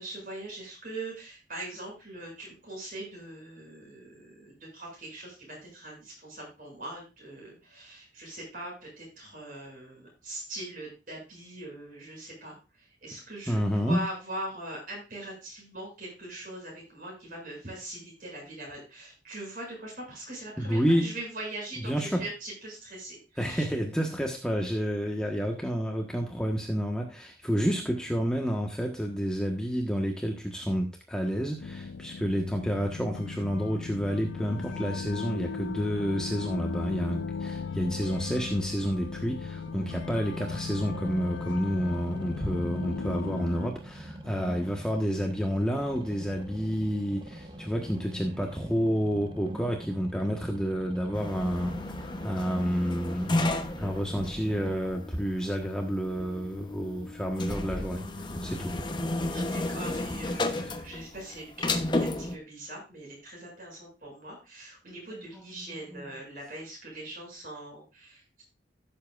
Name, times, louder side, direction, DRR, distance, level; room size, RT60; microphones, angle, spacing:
voice 1, 0.0-23.7 59.3-68.4, right 1 dB, 45° right, -2 dB, 7.2 m, -41 dB
voice 2, 13.5-14.0 20.6-21.1 21.8-22.2 23.4-53.5 53.8-58.7, equal, 5° left, 0 dB, 1.4 m, -29 dB
sound 1, 31.6-43.7, left 5 dB, 80° left, 0.4 m, -37 dB
sound 2, 39.6-54.8, right 1 dB, 25° right, 1.0 m, -44 dB
sound 3, 51.1-62.4, left 2 dB, 25° left, 1.0 m, -33 dB
15.5 x 7.6 x 2.5 m, 0.29 s
head